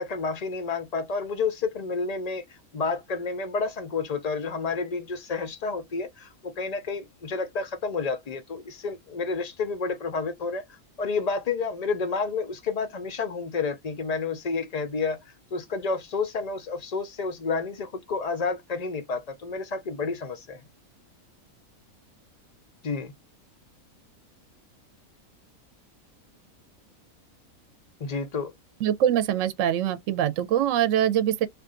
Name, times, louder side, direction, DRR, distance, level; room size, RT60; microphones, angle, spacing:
voice 1, 0.0-10.6 11.0-15.2 15.5-20.6 22.8-23.1 28.0-28.5, left 4 dB, 75° left, 0.3 m, -30 dB
voice 2, 28.8-31.5, right 10 dB, 65° right, 0.9 m, -23 dB
2.5 x 2.5 x 3.7 m
omnidirectional pair, 1.5 m